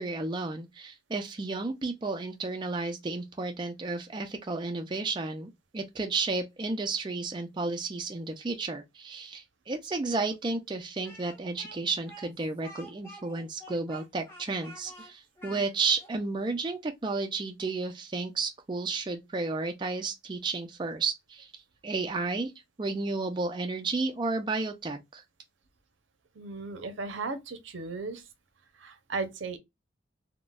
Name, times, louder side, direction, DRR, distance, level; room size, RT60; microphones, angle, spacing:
voice 1, 0.0-22.5 22.8-25.2, right 3 dB, 25° right, 0.3 m, -32 dB
Speech, 11.0-16.1, equal, 15° left, 0.8 m, -49 dB
voice 2, 26.3-28.2 28.8-29.6, right 3 dB, 80° right, 0.6 m, -36 dB
3.6 x 2.0 x 2.2 m
head